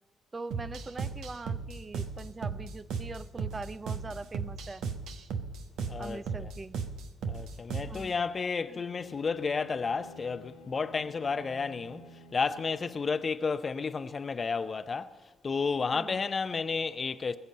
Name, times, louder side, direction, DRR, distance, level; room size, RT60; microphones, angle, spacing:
voice 1, 0.3-4.8 6.0-6.8 7.8-8.1 8.7-8.8 15.9-16.2, right 3 dB, 30° right, 0.6 m, -42 dB
sound 1, 0.5-8.1, right 5 dB, 65° right, 1.0 m, -36 dB
voice 2, 5.9-6.5 7.3-12.1 12.3-15.1 15.4-17.4, left 5 dB, 40° left, 0.6 m, -32 dB
Bowed string instrument, 8.6-13.5, left 4 dB, 90° left, 1.1 m, -52 dB
20.5 x 7.0 x 7.7 m
hypercardioid pair, 40°, 0 cm